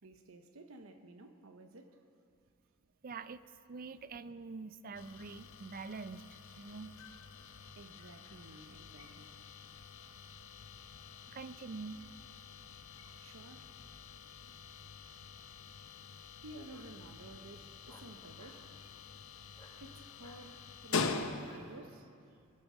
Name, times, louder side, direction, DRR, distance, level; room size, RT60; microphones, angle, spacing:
voice 1, 0.0-2.0 6.6-6.8 7.8-9.4 13.2-13.7 16.4-18.7 19.8-22.5, right 2 dB, 70° right, 7 dB, 0.9 m, -53 dB
voice 2, 3.0-3.4 3.7-6.9 11.3-12.0, right 4 dB, 45° right, 14 dB, 0.5 m, -45 dB
sound 1, 4.9-21.8, left 4 dB, 70° left, 0.9 m, -45 dB
Bark, 15.0-15.2 16.7-16.9 17.9-18.6 19.5-19.8 20.2-20.4 21.0-21.7, left 2 dB, 20° left, 1.7 m, -59 dB
21.5 x 11.0 x 6.2 m, 2.4 s
head